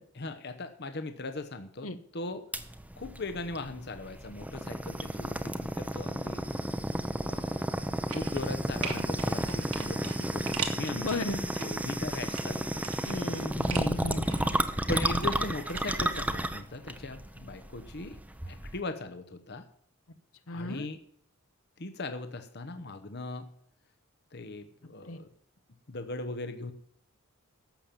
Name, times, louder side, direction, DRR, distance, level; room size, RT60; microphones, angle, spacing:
voice 1, 0.1-2.4 3.0-6.5 7.2-7.6 8.1-13.0 14.9-18.2 18.5-19.7 20.5-21.0 21.8-23.5 24.3-25.3 25.9-26.7, left 2 dB, 50° left, 9 dB, 1.0 m, -39 dB
sound 1, 2.5-18.8, right 1 dB, 5° right, 0.8 m, -32 dB
sound 2, 8.1-8.5 8.8-11.7 12.1-13.9 14.3-15.8 16.1-16.2, right 6 dB, 80° right, 2.4 m, -40 dB
voice 2, 10.9-11.4 13.0-14.3 20.5-20.9 25.1-25.2, left 2 dB, 70° left, 10 dB, 1.1 m, -34 dB
12.0 x 7.7 x 7.1 m, 0.67 s
head